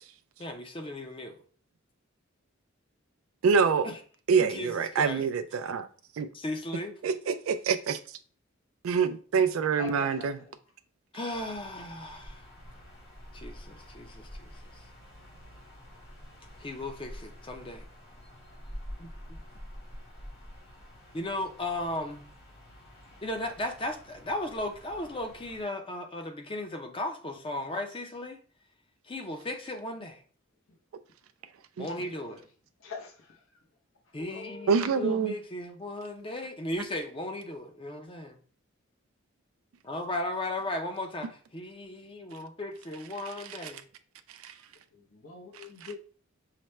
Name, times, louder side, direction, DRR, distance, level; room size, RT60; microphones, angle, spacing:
voice 1, 0.4-1.4 3.8-4.0 4.4-5.2 6.3-6.9 11.1-12.4 13.3-14.5 16.6-17.8 19.0-19.1 21.1-22.3 23.2-28.4 29.1-30.2 31.8-32.5 34.1-38.4 39.8-43.9, left 1 dB, 25° left, 0.5 m, -36 dB
voice 2, 3.4-3.9 4.3-5.9 6.2-6.3 7.0-8.2 8.8-10.4 31.8-31.9 34.7-35.3 43.6-43.7 44.4-44.5 45.5-45.9, right 6 dB, 80° right, 0.3 m, -26 dB
voice 3, 9.8-10.3 32.0-32.3 32.8-33.4 34.2-34.9 44.9-46.0, left 4 dB, 75° left, 0.8 m, -43 dB
sound 1, 11.3-25.6, equal, 50° left, 1.7 m, -48 dB
5.7 x 2.1 x 3.1 m
head